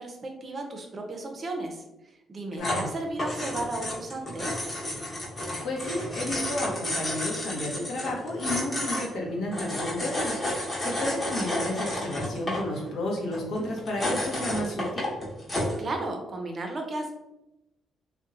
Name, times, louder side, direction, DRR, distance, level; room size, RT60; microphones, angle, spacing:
voice 1, 0.0-4.6 15.8-17.1, right 2 dB, 40° right, 3 dB, 0.5 m, -34 dB
voice 2, 2.6-2.9 5.6-15.1, left 1 dB, 65° left, -1 dB, 0.7 m, -32 dB
sound 1, 2.6-15.8, left 1 dB, 30° left, 0.9 m, -31 dB
2.7 x 2.1 x 2.4 m, 0.91 s
cardioid pair, 95°, 0 cm